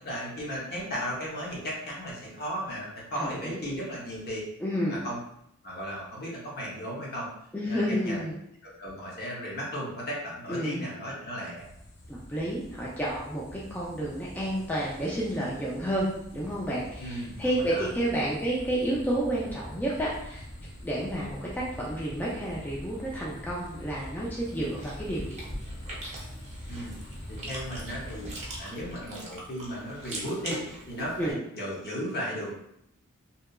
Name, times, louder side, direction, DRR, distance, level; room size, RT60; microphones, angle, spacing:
voice 1, 0.0-4.4 4.9-5.2 5.6-7.3 7.6-8.2 8.6-11.7 17.0-17.9 26.7-26.9 27.3-28.3 28.6-32.6, equal, 50° left, -4 dB, 0.8 m, -35 dB
voice 2, 3.2-3.6 4.6-5.0 7.5-8.4 10.5-10.9 12.1-20.4 20.8-25.4 31.2-31.4, right 1 dB, 10° left, -6 dB, 0.3 m, -30 dB
sound 1, 11.6-28.6, equal, 85° left, 0.6 m, -44 dB
Chewing mastication, 24.4-31.3, right 1 dB, 30° right, 0.6 m, -41 dB
2.8 x 2.3 x 2.2 m, 0.76 s
head